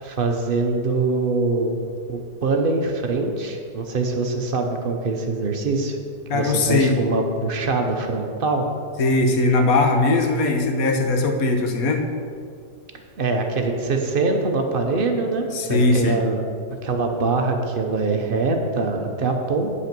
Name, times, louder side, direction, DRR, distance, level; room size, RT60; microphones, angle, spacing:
voice 1, 0.0-1.8 2.1-6.0 6.3-8.6 13.2-16.4 16.8-19.8, right 3 dB, 50° right, 3 dB, 0.7 m, -23 dB
voice 2, 6.3-6.9 9.0-12.0 15.5-16.2, left 2 dB, 60° left, 5 dB, 1.2 m, -20 dB
8.5 x 5.6 x 5.9 m, 2.3 s
omnidirectional pair, 1.8 m